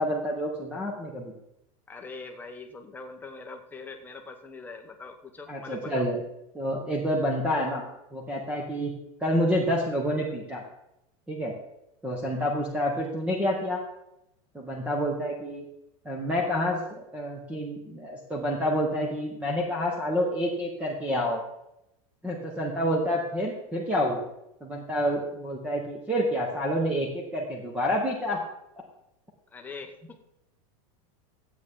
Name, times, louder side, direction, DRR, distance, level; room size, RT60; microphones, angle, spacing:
voice 1, 0.0-1.3 5.5-6.2 6.5-7.8 8.1-8.9 9.2-10.6 11.3-11.5 12.0-13.8 14.5-15.6 16.0-21.4 22.2-24.2 24.6-28.4, equal, 5° right, -1 dB, 1.3 m, -28 dB
voice 2, 1.9-6.1 29.5-30.2, left 4 dB, 10° left, 3 dB, 1.1 m, -42 dB
12.5 x 8.2 x 3.8 m, 0.84 s
supercardioid pair, 145°, 18 cm